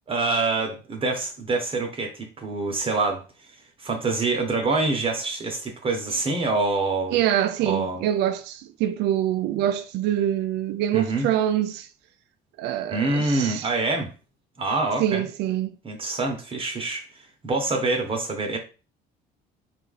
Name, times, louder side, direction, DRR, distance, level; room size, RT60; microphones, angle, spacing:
voice 1, 0.1-3.2 3.8-7.2 7.6-8.0 10.9-11.3 12.9-14.1 14.6-15.2 15.8-18.6, right 3 dB, 35° right, 0.9 m, -26 dB
voice 2, 7.1-11.9 12.6-13.7 15.0-15.8, right 11 dB, 85° right, 0.4 m, -25 dB
4.0 x 2.4 x 3.9 m
cardioid pair, 110°, 17 cm